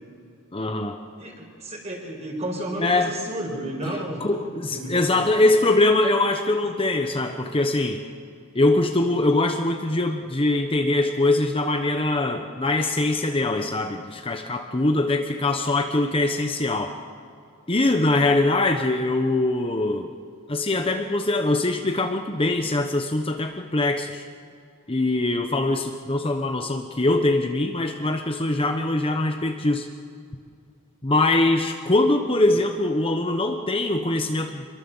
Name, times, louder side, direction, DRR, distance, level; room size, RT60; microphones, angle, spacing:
voice 1, 0.5-1.0 2.8-3.1 3.8-8.0 8.5-16.9 17.7-20.1 20.5-24.3 24.9-29.9 31.0-34.6, left 2 dB, 25° left, 5 dB, 1.0 m, -22 dB
voice 2, 1.2-4.4 4.7-5.2, right 1 dB, 30° right, 1 dB, 5.4 m, -32 dB
26.0 x 22.5 x 7.2 m, 2.4 s
head